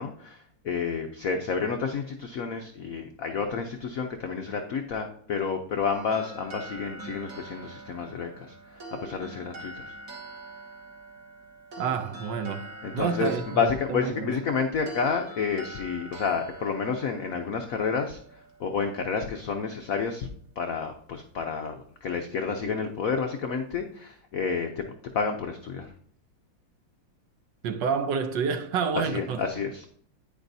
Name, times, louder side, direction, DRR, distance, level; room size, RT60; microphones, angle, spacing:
voice 1, 0.0-9.9 12.8-20.3 20.6-24.8 25.1-25.9 29.0-29.8, left 5 dB, 80° left, 0.7 m, -30 dB
sound 1, 5.9-19.1, right 2 dB, 45° right, 1.7 m, -44 dB
voice 2, 11.8-14.3 27.6-29.4, right 6 dB, 70° right, 1.2 m, -29 dB
10.0 x 9.6 x 2.7 m
omnidirectional pair, 2.3 m